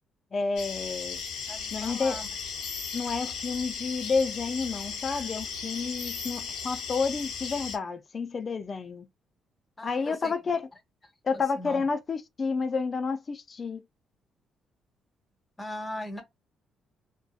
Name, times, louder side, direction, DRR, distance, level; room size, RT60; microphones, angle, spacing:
voice 1, 0.3-1.2 1.7-2.2 2.9-9.1 9.8-10.7 11.2-13.8, left 4 dB, 40° left, 0.4 m, -30 dB
sound 1, 0.6-7.8, left 6 dB, 85° left, 0.7 m, -36 dB
voice 2, 1.5-2.3 9.8-10.3 11.6-11.8 15.6-16.2, left 1 dB, 20° left, 0.8 m, -38 dB
2.6 x 2.2 x 2.3 m
cardioid pair, 90°, 0 cm